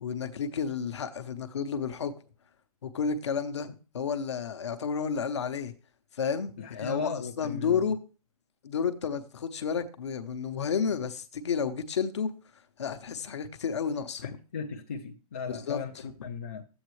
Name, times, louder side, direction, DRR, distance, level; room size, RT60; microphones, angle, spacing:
voice 1, 0.0-2.1 2.8-5.7 6.2-7.1 7.4-8.0 8.6-12.3 12.8-14.3 15.5-15.8 16.2-16.3, left 6 dB, 50° left, 0.9 m, -31 dB
voice 2, 6.6-7.8 14.2-16.6, left 5 dB, 20° left, 0.4 m, -37 dB
11.5 x 8.1 x 3.2 m
hypercardioid pair, 170°, 19 cm